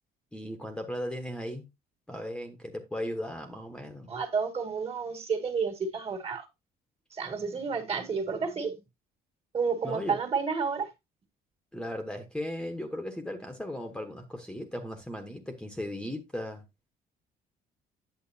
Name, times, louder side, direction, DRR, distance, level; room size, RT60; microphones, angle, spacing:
voice 1, 0.3-1.7 2.1-4.1 9.8-10.2 11.7-16.6, left 1 dB, 5° left, 1.2 m, -37 dB
voice 2, 4.1-6.5 7.1-8.8 9.5-10.9, right 5 dB, 35° right, 2.0 m, -31 dB
8.9 x 7.5 x 2.7 m
cardioid pair, 110°, 17 cm